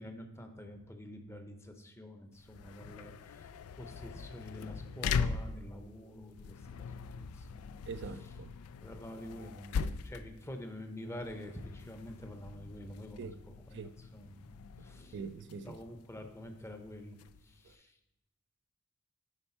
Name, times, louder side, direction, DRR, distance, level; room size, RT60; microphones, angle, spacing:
voice 1, 0.0-6.9 7.2-7.8 8.2-8.3 8.8-13.3 13.7-15.2 15.6-17.2 17.4-17.9, left 1 dB, 10° left, 0.7 m, -47 dB
sound 1, 2.3-17.7, left 5 dB, 85° left, 0.3 m, -41 dB
voice 2, 7.9-8.5 13.2-13.3 13.7-13.9 14.8-14.9 15.1-15.7 17.6-17.7, right 5 dB, 55° right, 0.4 m, -43 dB
9.8 x 4.3 x 4.3 m
head